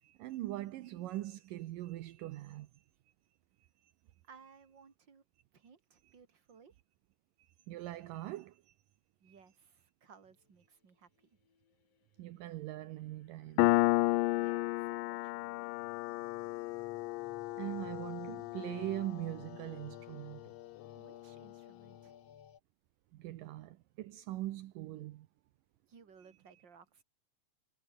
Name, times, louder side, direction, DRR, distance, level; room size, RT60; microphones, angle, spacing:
voice 1, 0.0-2.8 3.8-3.9 7.4-8.7 9.2-9.4 12.2-13.7 17.6-20.5 23.1-25.3, right 15 dB, 75° right, 2.5 m, -42 dB
voice 2, 4.2-5.2 5.5-6.8 9.2-11.3 14.3-15.7 21.0-22.2 25.9-27.0, right 6 dB, 35° right, 3.4 m, -60 dB
sound 1, 11.2-22.6, left 9 dB, 50° left, 2.5 m, -59 dB
Piano, 13.6-20.8, left 20 dB, 80° left, 2.3 m, -33 dB
omnidirectional pair, 4.1 m